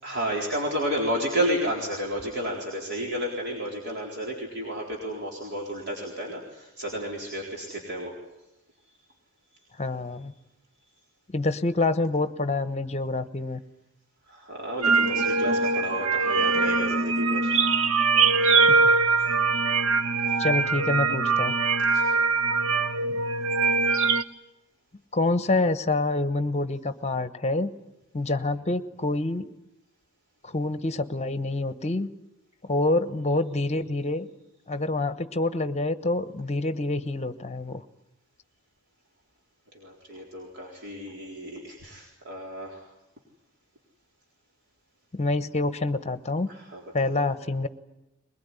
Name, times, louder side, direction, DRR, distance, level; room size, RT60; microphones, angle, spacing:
voice 1, 0.0-8.1 14.3-17.5 19.2-19.3 20.3-20.4 21.9-22.3 39.7-42.9 46.5-47.1, equal, 55° right, -2 dB, 4.1 m, -32 dB
voice 2, 9.8-10.3 11.3-13.6 18.7-18.9 20.4-21.5 25.1-27.7 28.1-29.5 30.4-32.1 32.6-34.3 34.7-37.8 45.1-46.5 46.9-47.7, left 2 dB, 30° left, 12 dB, 1.1 m, -27 dB
sound 1, 14.8-24.2, right 4 dB, 80° right, 1.1 m, -22 dB
22.0 x 21.0 x 9.8 m, 0.93 s
head